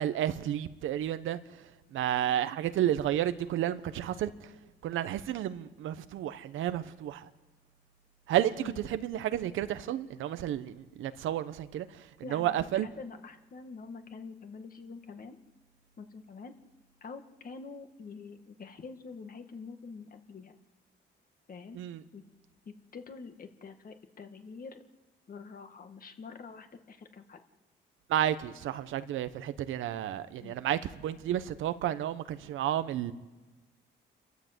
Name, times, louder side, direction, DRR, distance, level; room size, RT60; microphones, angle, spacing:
voice 1, 0.0-1.4 1.9-4.5 4.8-7.3 8.3-12.0 12.3-12.9 21.7-22.0 28.1-33.1, right 11 dB, 80° right, 1.1 m, -31 dB
voice 2, 12.2-15.4 16.0-16.5 17.0-20.5 21.5-21.8 22.1-22.2 22.7-24.8 25.3-27.4 30.4-30.5, left 4 dB, 45° left, 2.0 m, -46 dB
29.0 x 13.0 x 8.0 m
cardioid pair, 90°, 20 cm